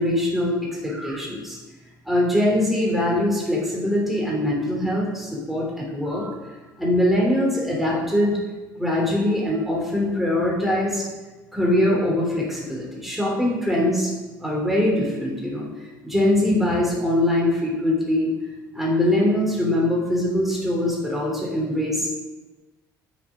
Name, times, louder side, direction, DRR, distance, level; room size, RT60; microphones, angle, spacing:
voice 1, 0.0-1.6 2.1-6.4 6.8-8.3 8.8-11.0 11.5-14.1 14.4-15.6 16.0-18.3 18.7-22.1, left 1 dB, ahead, -4 dB, 3.3 m, -22 dB
7.7 x 6.9 x 5.0 m, 1.2 s
hypercardioid pair, 65°, 10 cm